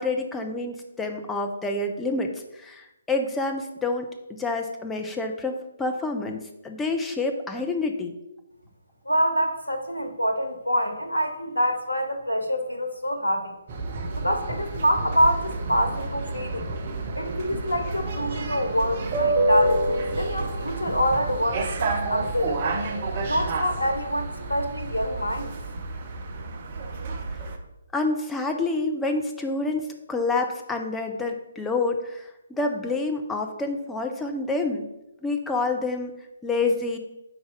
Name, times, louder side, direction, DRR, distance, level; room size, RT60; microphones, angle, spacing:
voice 1, 0.0-4.1 4.4-8.2 27.9-34.9 35.2-36.1 36.4-37.0, left 3 dB, 5° left, 3 dB, 0.6 m, -28 dB
voice 2, 9.0-13.5 14.2-16.7 17.2-22.7 23.2-25.5, equal, 80° left, 6 dB, 1.0 m, -26 dB
sound 1, 13.7-27.6, right 2 dB, 35° right, 0.7 m, -29 dB
5.0 x 4.0 x 5.9 m, 0.93 s
figure-of-eight pair, 140°, 0 cm